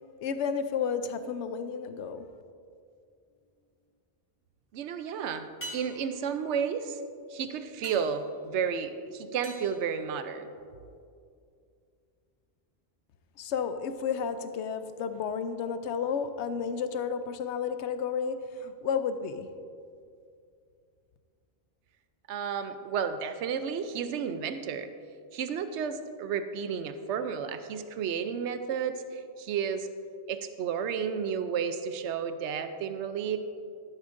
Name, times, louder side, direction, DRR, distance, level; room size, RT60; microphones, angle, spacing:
voice 1, 0.2-2.3 13.4-19.5, left 6 dB, 85° left, 10 dB, 0.9 m, -32 dB
sound 1, 3.3-3.9 5.6-10.8 15.2-15.3, right 1 dB, 50° left, 2.0 m, -48 dB
voice 2, 4.7-5.5 5.7-7.0 7.3-10.5 22.3-24.9 25.3-29.9 30.3-33.4, right 7 dB, 85° right, 9 dB, 0.9 m, -32 dB
13.0 x 11.0 x 2.6 m, 2.4 s
omnidirectional pair, 1.2 m